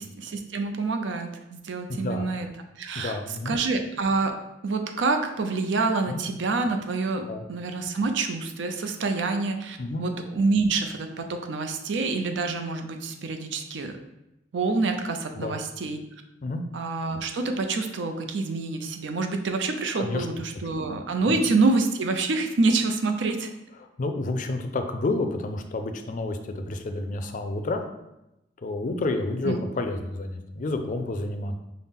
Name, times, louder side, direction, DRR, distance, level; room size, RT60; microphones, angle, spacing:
voice 1, 0.0-2.5 2.8-3.2 3.5-4.3 4.6-14.0 14.5-16.0 16.7-23.5 29.4-29.6, right 3 dB, 85° right, 6 dB, 0.5 m, -27 dB
voice 2, 1.9-2.2 2.9-3.6 6.1-6.2 7.3-7.4 9.8-10.1 15.4-15.6 16.4-16.6 20.0-20.3 24.0-27.8 28.6-31.6, left 2 dB, 45° left, 7 dB, 0.4 m, -29 dB
5.6 x 2.0 x 3.6 m, 0.91 s
head